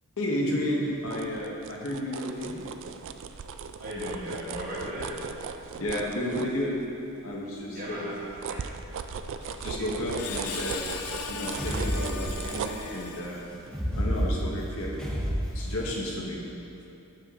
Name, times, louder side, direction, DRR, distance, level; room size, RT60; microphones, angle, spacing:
voice 1, 0.2-2.7 5.8-6.8 7.2-8.1 9.6-10.9 11.3-13.4 13.9-15.2 15.5-16.4, left 1 dB, 70° left, -3 dB, 1.1 m, -32 dB
sound 1, 0.9-7.1 7.6-15.1 15.5-15.6, right 6 dB, 60° right, 0.3 m, -39 dB
voice 2, 3.8-5.1 7.7-8.1 8.4-8.7 9.4-9.9, equal, 40° right, -6 dB, 1.6 m, -37 dB
Screech, 9.4-13.7, left 6 dB, 85° left, 0.5 m, -39 dB
sound 2, 11.0-12.7 13.7-16.0, equal, 5° left, 0.7 m, -30 dB
7.9 x 5.5 x 3.6 m, 2.7 s
head